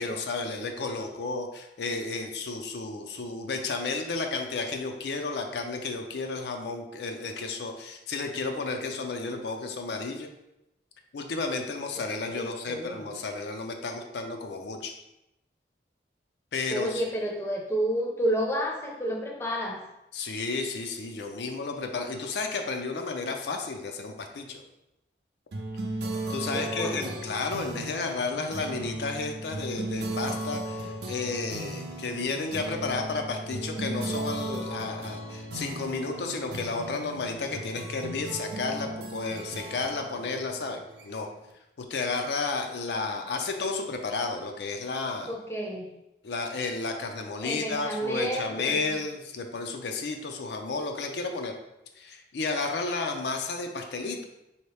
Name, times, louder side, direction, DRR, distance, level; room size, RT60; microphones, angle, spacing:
voice 1, 0.0-10.3 11.1-14.9 16.5-17.0 20.1-24.6 26.3-41.3 41.8-45.3 46.2-51.5 52.0-54.2, left 3 dB, 75° left, 4 dB, 0.4 m, -32 dB
voice 2, 12.3-13.0 16.7-19.8 26.5-27.2 45.3-45.9 47.4-48.8, equal, 15° left, -1 dB, 0.5 m, -30 dB
sound 1, 25.5-41.4, right 1 dB, 75° right, 0.6 m, -36 dB
4.5 x 2.8 x 3.2 m, 0.90 s
head